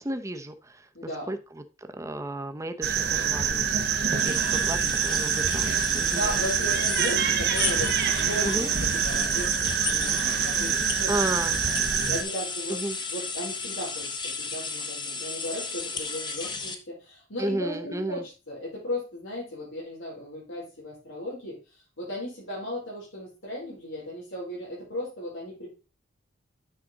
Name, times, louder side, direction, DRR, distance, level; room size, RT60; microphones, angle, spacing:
voice 1, 0.0-0.9 1.3-6.4 8.4-8.7 11.1-11.6 12.7-13.0 17.4-18.3, right 1 dB, 15° right, 7 dB, 0.7 m, -33 dB
voice 2, 0.9-1.3 6.1-11.1 11.4-12.8 13.1-21.6 22.0-25.7, left 1 dB, 85° left, -5 dB, 4.9 m, -36 dB
sound 1, 2.8-12.2, right 7 dB, 55° right, 0.9 m, -25 dB
sound 2, 4.2-16.8, left 4 dB, 25° left, 1.0 m, -34 dB
8.8 x 5.0 x 3.9 m, 0.31 s
head